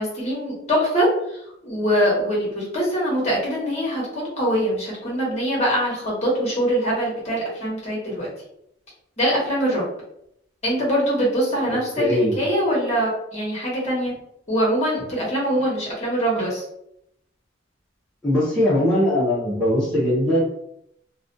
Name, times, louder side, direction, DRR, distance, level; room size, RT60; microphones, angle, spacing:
voice 1, 0.0-1.4 1.6-8.3 9.2-9.8 10.6-14.1 14.5-16.6, equal, 35° left, -4 dB, 0.9 m, -23 dB
voice 2, 11.7-12.4 18.2-20.4, left 1 dB, 5° left, -10 dB, 0.5 m, -20 dB
2.3 x 2.2 x 2.5 m, 0.76 s
head